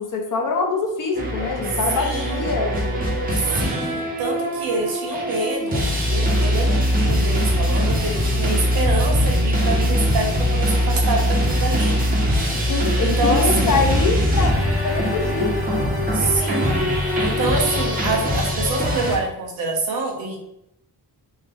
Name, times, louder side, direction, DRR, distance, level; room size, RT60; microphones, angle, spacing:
voice 1, 0.0-3.0 12.7-15.5, left 4 dB, 50° left, 1 dB, 0.6 m, -24 dB
sound 1, 1.1-19.2, equal, 25° right, 0.5 m, -21 dB
voice 2, 1.9-2.5 3.3-12.0 12.3-12.4 13.0-13.9 16.1-20.4, right 3 dB, 60° right, 0 dB, 0.8 m, -26 dB
3.5 x 2.0 x 3.4 m, 0.80 s
wide cardioid pair, 175°, 40 cm